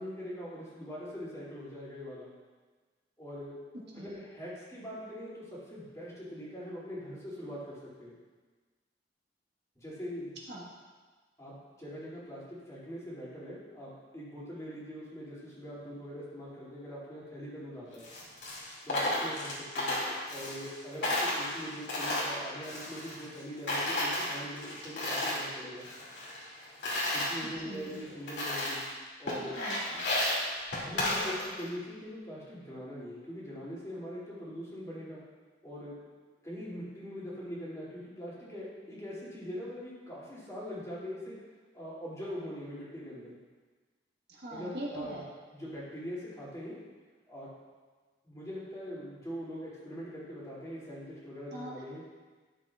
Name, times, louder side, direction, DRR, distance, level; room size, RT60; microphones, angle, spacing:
voice 1, 0.0-2.3 3.2-3.5 3.9-8.1 9.8-10.4 11.4-18.1 18.8-19.9 20.3-25.9 27.1-28.8 29.2-29.6 30.8-35.2 35.6-35.9 36.4-41.4 41.7-43.3 44.5-45.2 45.5-46.8 47.3-47.5 48.2-52.0, equal, 15° left, -8 dB, 2.7 m, -42 dB
Coin (dropping), 17.9-20.8 21.0-23.4 23.7-25.5 25.8-27.3 27.9-28.0 28.3-28.9 29.3-31.7, left 1 dB, 70° left, 2.4 m, -33 dB
voice 2, 27.6-28.0 29.6-30.0 44.3-45.2 51.5-51.7, right 1 dB, 60° right, -3 dB, 1.5 m, -41 dB
12.0 x 7.4 x 2.4 m, 1.4 s
head